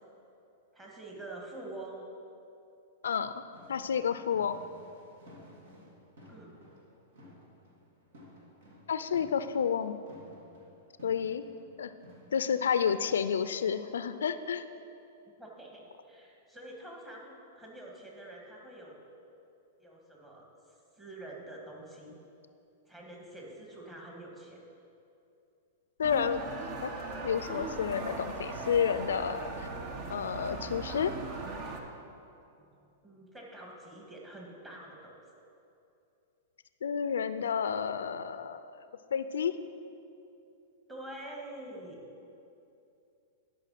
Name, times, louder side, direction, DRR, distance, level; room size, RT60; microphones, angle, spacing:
voice 1, 0.7-2.1 6.3-6.5 15.4-19.0 19.8-22.2 22.9-24.6 32.0-32.2 32.6-32.7 33.0-35.2 40.9-42.0, right 1 dB, 15° right, -2 dB, 2.3 m, -46 dB
sound 1, 3.5-14.0, left 1 dB, 75° right, 2.5 m, -55 dB
voice 2, 3.7-4.6 8.9-10.0 11.0-11.4 11.8-11.9 12.3-14.6 26.0-26.4 26.8-26.9 27.2-29.5 30.1-31.1 36.8-38.6 39.1-39.5, left 7 dB, 85° left, 12 dB, 0.4 m, -30 dB
sound 2, 26.0-31.8, right 3 dB, 45° right, 1.1 m, -39 dB
11.5 x 5.7 x 5.8 m, 2.7 s
hypercardioid pair, 120°, 0 cm